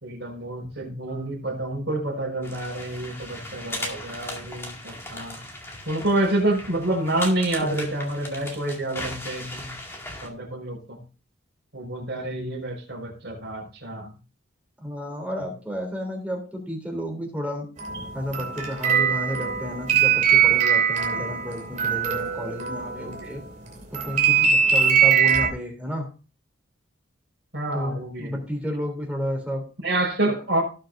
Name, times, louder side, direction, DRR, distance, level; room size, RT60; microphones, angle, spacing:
voice 1, 0.0-5.4 5.9-9.7 10.2-11.0 11.7-14.1 23.0-23.3 27.5-28.3 29.8-30.6, right 1 dB, 55° right, 0 dB, 5.2 m, -28 dB
sound 1, 2.4-10.3, left 1 dB, 10° left, 2.2 m, -37 dB
voice 2, 14.8-17.7 18.1-23.4 23.9-26.1 27.7-29.6, equal, 5° right, 1 dB, 3.4 m, -32 dB
sound 2, 17.8-23.4 23.9-25.5, right 8 dB, 35° right, 2.8 m, -21 dB
18.0 x 6.5 x 2.7 m, 0.35 s
head